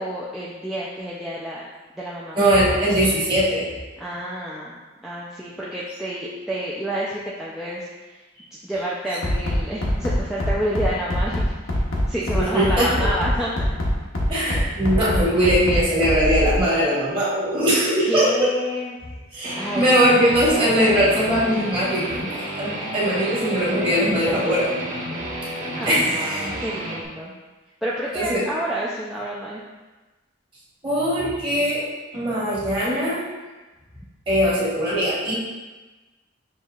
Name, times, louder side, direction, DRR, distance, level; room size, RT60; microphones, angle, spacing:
voice 1, 0.0-1.6 2.0-2.4 4.0-8.2 8.6-11.4 12.1-13.5 18.1-19.0 19.6-19.9 25.8-27.4 27.8-29.6, right 1 dB, ahead, -7 dB, 0.3 m, -29 dB
voice 2, 2.3-3.7 12.3-13.1 14.3-18.5 19.3-22.0 22.5-24.7 25.8-26.5 28.1-28.4 30.8-31.8 32.1-33.2 34.3-35.3, equal, 25° right, -9 dB, 1.4 m, -20 dB
Bass drum, 9.2-16.6, equal, 90° left, 0.8 m, -22 dB
Guitar, 19.4-27.0, right 1 dB, 40° right, 0.7 m, -31 dB
6.1 x 2.7 x 2.3 m, 1.2 s
head